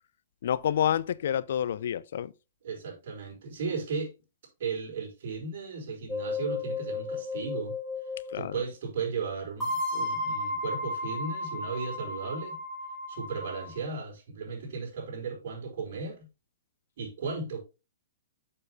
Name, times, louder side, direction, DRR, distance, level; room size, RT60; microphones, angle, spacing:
voice 1, 0.4-2.3 8.3-8.5, left 9 dB, 65° left, 0.4 m, -28 dB
voice 2, 2.6-4.1 4.6-7.7 8.3-12.6 13.1-16.3 17.0-17.6, right 4 dB, 60° right, 4.6 m, -35 dB
sound 1, 6.1-8.4 9.6-13.8, left 2 dB, 10° left, 4.3 m, -34 dB
7.2 x 6.4 x 3.6 m
hypercardioid pair, 130°, 0 cm